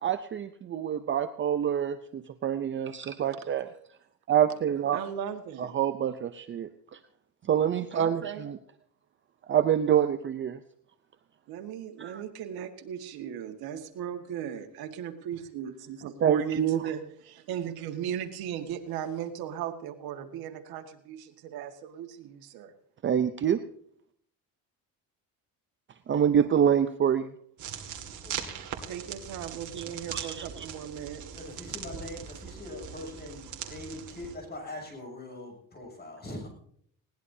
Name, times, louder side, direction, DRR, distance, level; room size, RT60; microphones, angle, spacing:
voice 1, 0.0-3.7 4.3-5.0 5.7-6.7 7.5-8.6 9.5-10.6 12.0-12.2 16.2-16.8 23.0-23.6 26.1-27.3 30.1-30.5, right 9 dB, 35° right, 9 dB, 0.6 m, -26 dB
voice 2, 4.9-5.7 7.9-8.5 11.5-22.7 28.9-31.2, right 9 dB, 85° right, 6 dB, 1.8 m, -37 dB
sound 1, 27.6-34.4, right 8 dB, 55° right, 2.2 m, -40 dB
voice 3, 28.2-28.6 31.3-36.5, left 1 dB, 25° left, 1 dB, 7.2 m, -42 dB
20.5 x 18.0 x 2.8 m, 0.64 s
cardioid pair, 150°, 36 cm